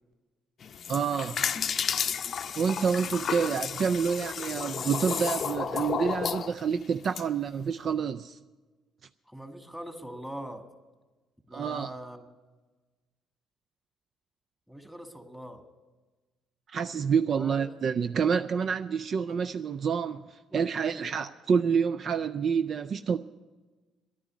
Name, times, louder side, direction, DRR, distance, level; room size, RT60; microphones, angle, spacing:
sound 1, 0.6-7.2, left 7 dB, 50° left, 0.6 m, -32 dB
voice 1, 0.9-1.5 2.6-8.4 11.5-11.9 16.7-23.2, right 6 dB, 50° right, 0.3 m, -28 dB
voice 2, 9.3-10.7 11.5-12.2 14.7-15.6 17.3-17.6 19.3-19.4 20.5-21.1, right 1 dB, 5° right, 1.7 m, -42 dB
11.0 x 9.8 x 9.4 m
hypercardioid pair, 60°, 0 cm